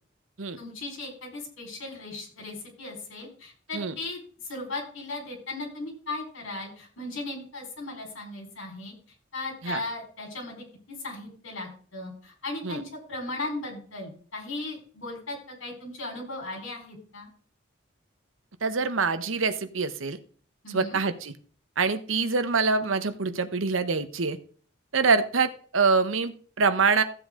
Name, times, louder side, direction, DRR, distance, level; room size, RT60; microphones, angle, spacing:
voice 1, 0.6-8.9 9.3-17.3 20.6-21.0, left 2 dB, 80° left, 1 dB, 4.5 m, -37 dB
voice 2, 18.6-20.2 20.7-21.3 21.8-24.4 24.9-27.0, right 4 dB, 80° right, 11 dB, 1.0 m, -25 dB
14.5 x 7.8 x 3.7 m, 0.43 s
head